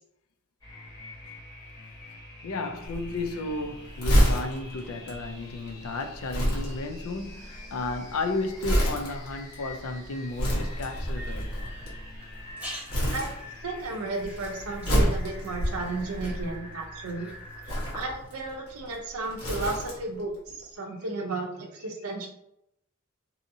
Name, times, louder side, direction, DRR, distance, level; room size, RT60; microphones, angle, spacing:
sound 1, 0.6-18.2, left 2 dB, 20° left, 1.3 m, -46 dB
voice 1, 2.4-11.5, left 2 dB, 70° left, 0.4 m, -33 dB
Crumpling crinkling, 2.8-12.5 12.9-13.8 14.1-16.8 17.5-20.2 20.5-20.6, equal, 85° left, 1.2 m, -28 dB
sound 2, 12.2-18.3, equal, 10° right, 1.0 m, -48 dB
voice 2, 13.6-17.3 17.9-22.3, right 3 dB, 70° right, 0.6 m, -33 dB
2.7 x 2.6 x 2.6 m
head